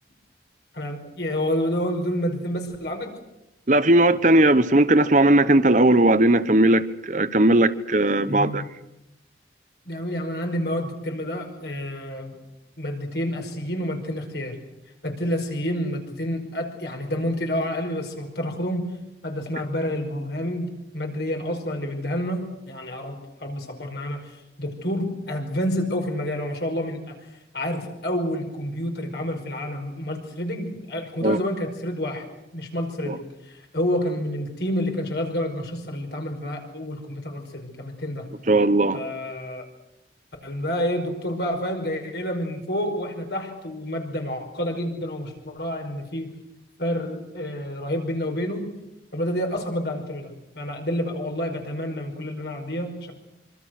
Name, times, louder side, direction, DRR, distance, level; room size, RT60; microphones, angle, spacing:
voice 1, 0.7-3.1 8.3-8.7 9.9-12.4 12.8-14.6 15.0-18.9 19.2-27.3 27.5-32.3 32.5-38.3 38.9-39.6 40.4-46.3 46.8-48.7 49.1-53.1, equal, 70° left, 5.4 m, -29 dB
voice 2, 3.7-8.6 31.2-31.4 33.1-33.2 38.5-39.0, right 1 dB, 45° right, 1.0 m, -18 dB
25.5 x 25.5 x 6.6 m
head